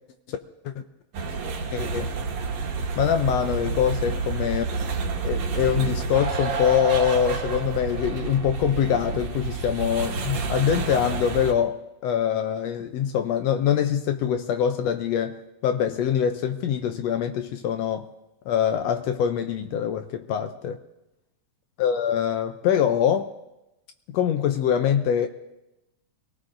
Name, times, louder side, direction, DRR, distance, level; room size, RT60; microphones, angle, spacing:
sound 1, 1.1-11.5, right 4 dB, 70° right, 2.4 m, -29 dB
voice 1, 1.7-2.1 3.0-4.6 5.2-18.1 18.5-20.8 21.8-23.3 24.1-25.3, left 9 dB, 75° left, 8 dB, 1.6 m, -24 dB
25.5 x 18.0 x 2.6 m, 0.93 s
omnidirectional pair, 3.4 m